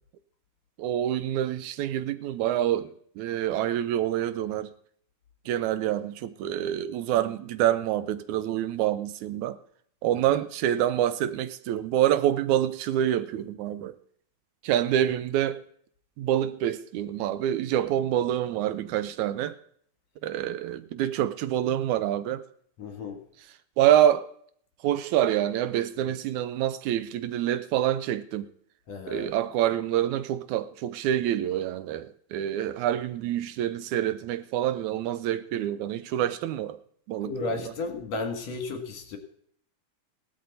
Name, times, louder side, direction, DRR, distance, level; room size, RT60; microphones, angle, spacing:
voice 1, 0.8-2.9 3.2-4.7 5.5-9.6 10.0-14.0 14.6-15.6 16.2-19.5 20.2-22.4 23.8-24.3 24.8-28.5 29.1-36.8 37.1-37.3, right 11 dB, 80° right, 2.0 m, -26 dB
voice 2, 22.8-23.2 26.0-26.2 28.9-29.3 37.2-39.2, left 3 dB, 65° left, 2.9 m, -34 dB
17.0 x 12.0 x 4.0 m
omnidirectional pair, 3.4 m